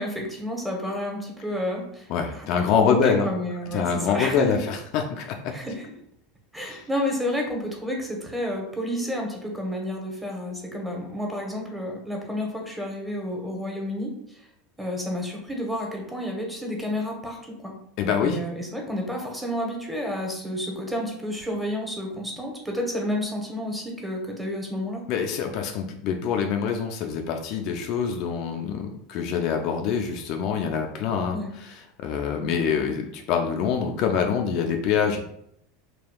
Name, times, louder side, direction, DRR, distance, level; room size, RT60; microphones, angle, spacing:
voice 1, 0.0-2.1 2.3-4.6 5.5-5.8 6.5-14.4 14.8-17.7 18.2-25.0 31.3-31.5, equal, 5° right, 0 dB, 0.8 m, -30 dB
voice 2, 2.1-3.3 3.7-5.5 6.7-6.8 18.0-18.4 25.1-35.2, left 7 dB, 55° left, 3 dB, 0.3 m, -25 dB
3.5 x 2.3 x 2.2 m, 0.74 s
hypercardioid pair, 80°, 0 cm